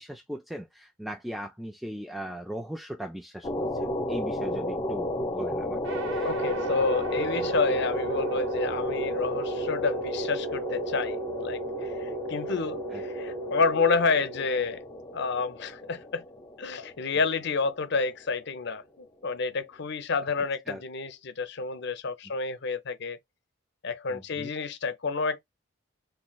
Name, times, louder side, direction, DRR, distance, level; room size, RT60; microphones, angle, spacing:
voice 1, 0.0-6.4 12.9-13.0 20.7-20.8 24.1-24.5, equal, ahead, 0.4 m, -39 dB
sound 1, 3.4-18.5, left 1 dB, 25° left, 1.0 m, -34 dB
sound 2, 5.8-15.1, right 2 dB, 85° right, 0.7 m, -35 dB
voice 2, 6.2-11.2 11.4-14.8 15.1-16.2 16.6-23.2 23.8-25.4, left 4 dB, 60° left, 0.6 m, -29 dB
3.8 x 3.1 x 2.3 m
head